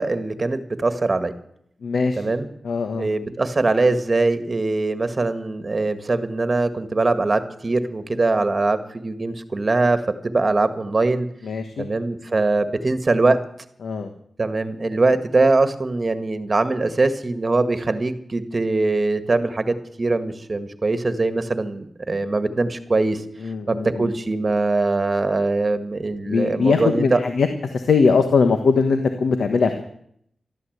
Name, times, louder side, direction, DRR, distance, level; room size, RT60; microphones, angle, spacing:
voice 1, 0.0-1.3 2.2-2.5 3.0-11.3 11.8-13.4 14.4-23.2 23.7-27.2, right 3 dB, 40° right, 10 dB, 1.8 m, -22 dB
voice 2, 1.8-2.2 2.6-3.1 11.4-11.9 13.8-14.1 23.4-24.1 26.3-27.5 27.7-29.8, left 4 dB, 85° left, 7 dB, 1.2 m, -20 dB
13.0 x 12.5 x 8.1 m, 0.69 s
cardioid pair, 65°, 0 cm